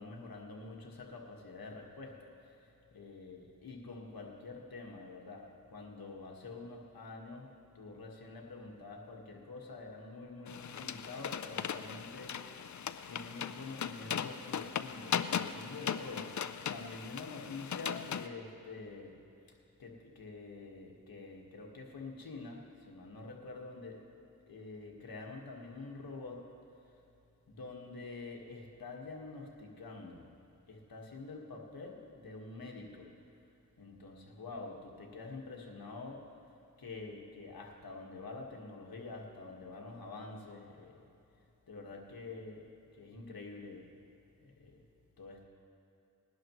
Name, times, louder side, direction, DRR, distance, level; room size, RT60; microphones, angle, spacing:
voice 1, 0.0-7.5 7.8-12.8 13.1-19.2 19.5-24.0 24.5-26.5 27.5-30.3 30.7-33.1 33.8-36.3 36.8-41.0 41.7-42.7 43.0-43.9 44.4-44.8 45.2-45.4, left 3 dB, 80° left, 0 dB, 1.7 m, -47 dB
sound 1, 10.5-18.3, left 8 dB, 55° left, 0.5 m, -38 dB
20.5 x 11.5 x 3.1 m, 2.8 s
cardioid pair, 40°, 35 cm